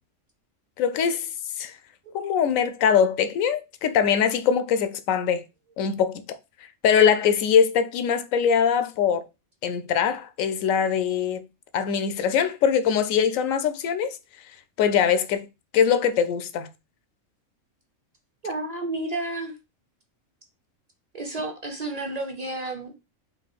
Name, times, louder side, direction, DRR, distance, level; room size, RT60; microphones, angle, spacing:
voice 1, 0.8-1.3 1.6-1.7 2.1-5.4 5.8-6.2 6.8-9.3 9.6-11.4 11.7-14.2 14.8-15.5 15.7-16.7, left 7 dB, 90° left, 1.0 m, -22 dB
voice 2, 18.4-19.5 21.1-23.0, right 2 dB, 40° right, 0.7 m, -31 dB
3.7 x 2.6 x 4.1 m
omnidirectional pair, 1.3 m